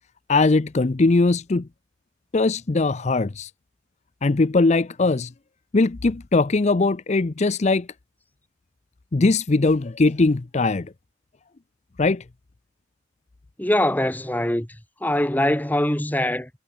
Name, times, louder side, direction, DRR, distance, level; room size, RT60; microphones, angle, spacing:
voice 1, 0.3-1.7 2.3-3.5 4.2-5.3 5.7-7.9 9.1-10.9 12.0-12.2, left 3 dB, 35° left, 0.5 m, -20 dB
voice 2, 13.6-14.7 15.0-16.5, left 1 dB, 10° left, 1.2 m, -22 dB
head